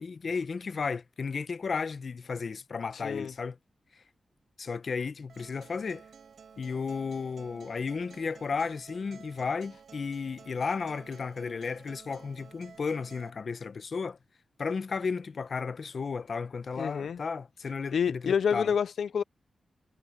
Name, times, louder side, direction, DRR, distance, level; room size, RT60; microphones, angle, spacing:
voice 1, 0.0-3.6 4.6-6.0 6.6-14.2 14.6-18.7, left 5 dB, 50° left, 0.7 m, -34 dB
Acoustic guitar, 5.3-13.3, right 6 dB, 65° right, 4.8 m, -53 dB
voice 2, 16.8-17.2 17.9-19.2, left 7 dB, 85° left, 0.3 m, -28 dB
wide cardioid pair, 165°, 0 cm